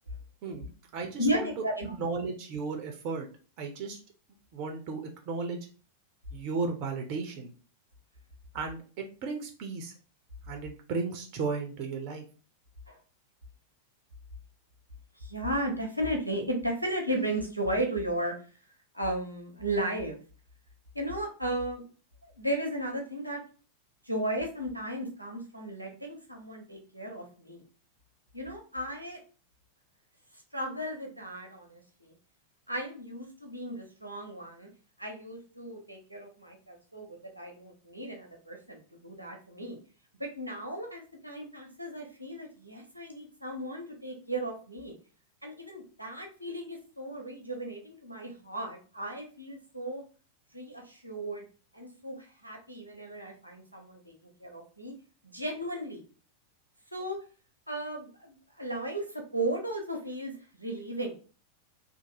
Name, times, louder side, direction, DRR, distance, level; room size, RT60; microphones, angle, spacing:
voice 1, 0.4-1.5 2.0-3.3 3.6-4.0 4.5-5.7 6.3-7.5 8.5-9.9 10.5-12.2, right 4 dB, 45° right, 3 dB, 0.5 m, -35 dB
voice 2, 1.2-2.0 12.9-13.0 15.2-18.3 18.9-20.2 20.9-21.8 22.2-23.4 24.0-27.6 28.3-29.2 30.3-32.1 32.7-34.7 35.0-39.8 40.2-44.9 45.4-50.0 50.5-51.4 51.7-54.1 54.4-54.9 55.3-56.0 56.9-57.2 57.7-61.1, right 1 dB, 90° right, 1 dB, 0.7 m, -35 dB
2.8 x 2.0 x 3.0 m, 0.37 s
figure-of-eight pair, 90°, 0 cm